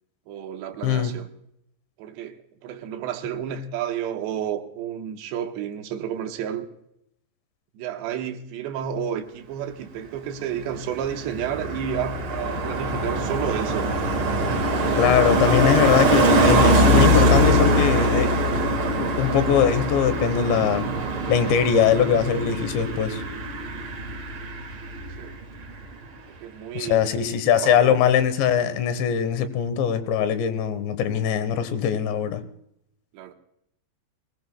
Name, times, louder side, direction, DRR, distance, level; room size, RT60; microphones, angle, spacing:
voice 1, 0.3-1.3 2.0-6.7 7.7-13.9 14.6-15.1 16.2-18.0 25.2-25.4 26.3-27.0 27.5-28.0 33.1-33.3, right 9 dB, 75° right, 3.2 m, -31 dB
voice 2, 0.8-1.1 15.0-18.3 19.0-20.9 21.3-23.2 26.7-32.4, left 8 dB, 80° left, 3.4 m, -21 dB
Car passing by, 10.6-25.3 25.6-25.9, right 1 dB, 55° right, 1.2 m, -22 dB
23.0 x 20.0 x 2.2 m
omnidirectional pair, 5.2 m